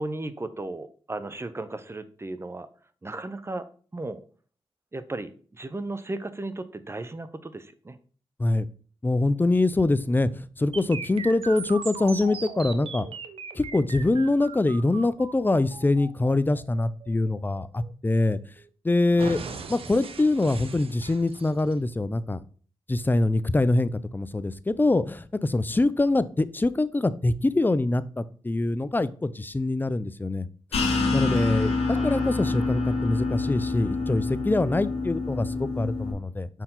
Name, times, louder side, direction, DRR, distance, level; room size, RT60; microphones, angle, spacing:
voice 1, 0.0-2.7 3.0-3.7 3.9-4.2 4.9-8.0 19.1-19.2 31.9-32.3, right 2 dB, 25° right, 13 dB, 0.7 m, -35 dB
voice 2, 9.0-13.1 13.5-18.4 18.8-19.4 19.7-22.4 22.9-30.5 31.1-36.5, left 2 dB, 20° left, 15 dB, 0.5 m, -24 dB
sound 1, 10.7-18.7 19.2-21.7, right 5 dB, 65° right, 0.8 m, -39 dB
sound 2, 30.7-36.1, left 3 dB, 75° left, 1.6 m, -27 dB
5.5 x 4.6 x 3.8 m, 0.42 s
cardioid pair, 50°, 10 cm